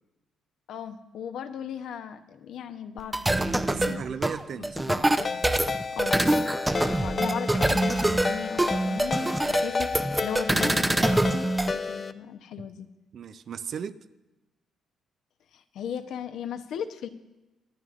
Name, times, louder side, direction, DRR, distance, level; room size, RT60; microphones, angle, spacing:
voice 1, 0.7-4.0 4.6-5.4 5.9-12.9 15.5-17.1, left 8 dB, 75° left, 7 dB, 0.8 m, -37 dB
sound 1, 3.0-11.7, right 1 dB, 10° right, 0.6 m, -25 dB
voice 2, 3.7-4.9 12.6-12.7 13.1-14.0, right 7 dB, 60° right, 12 dB, 0.5 m, -36 dB
Ringtone, 5.2-12.1, left 4 dB, 35° left, 0.5 m, -31 dB
25.0 x 9.8 x 2.5 m, 1.0 s
cardioid pair, 90°, 0 cm